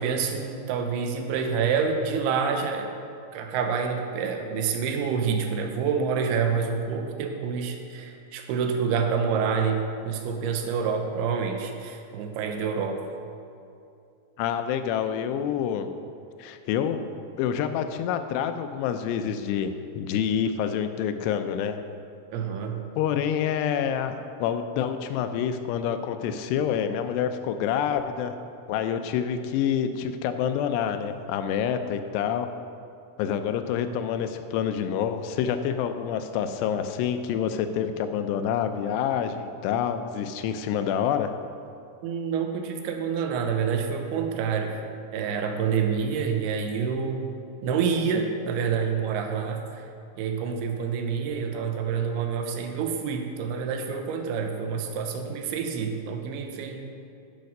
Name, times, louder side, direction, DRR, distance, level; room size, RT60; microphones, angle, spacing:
voice 1, 0.0-2.9 3.3-13.0 22.3-22.8 42.0-44.8 45.1-47.2 47.6-49.9 50.2-56.8, right 6 dB, 80° right, 4 dB, 2.6 m, -27 dB
voice 2, 14.4-15.9 16.4-17.0 17.4-21.8 23.0-24.2 24.4-28.3 28.7-32.5 33.2-41.3, left 8 dB, 90° left, 8 dB, 2.7 m, -27 dB
10.5 x 5.7 x 5.3 m, 2.5 s
omnidirectional pair, 4.7 m